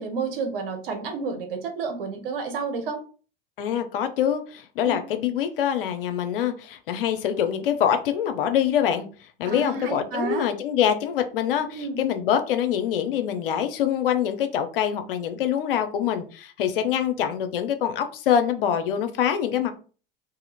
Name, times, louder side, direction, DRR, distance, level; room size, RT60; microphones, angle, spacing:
voice 1, 0.0-3.0 4.8-5.0 9.5-10.5 11.7-12.0, right 4 dB, 70° right, 4 dB, 1.0 m, -30 dB
voice 2, 3.6-9.1 9.4-19.7, left 9 dB, 70° left, 8 dB, 0.6 m, -25 dB
2.8 x 2.6 x 4.0 m, 0.38 s
figure-of-eight pair, 75°, 29 cm